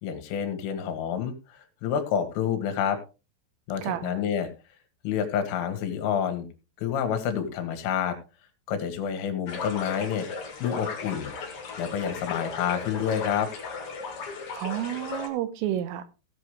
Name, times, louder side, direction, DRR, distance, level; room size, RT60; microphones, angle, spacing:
voice 1, 0.0-3.0 3.7-4.5 5.0-6.5 6.8-8.2 8.7-10.3 10.6-11.3 11.8-13.5, left 8 dB, 80° left, 4.1 m, -28 dB
voice 2, 3.8-4.2 14.6-16.1, right 12 dB, 85° right, 3.6 m, -30 dB
sound 1, 9.5-15.3, left 4 dB, 55° left, 1.5 m, -36 dB
16.5 x 8.2 x 3.2 m
omnidirectional pair, 5.8 m